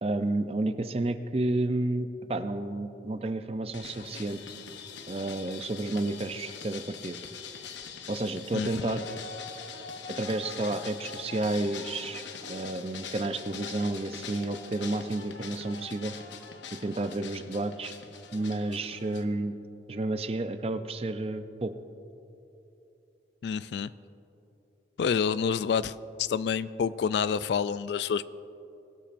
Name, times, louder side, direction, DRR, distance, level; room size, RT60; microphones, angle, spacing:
voice 1, 0.0-4.4 5.1-7.2 8.1-9.2 10.2-16.1 16.8-18.0 18.3-19.5 19.9-21.7, right 2 dB, 35° right, 10 dB, 0.5 m, -31 dB
sound 1, 3.7-19.2, left 6 dB, 90° left, 0.8 m, -43 dB
voice 2, 8.5-9.0 23.4-23.9 25.0-25.9 26.2-28.3, left 6 dB, 70° left, 16 dB, 0.3 m, -28 dB
21.0 x 12.5 x 2.5 m, 2.9 s
head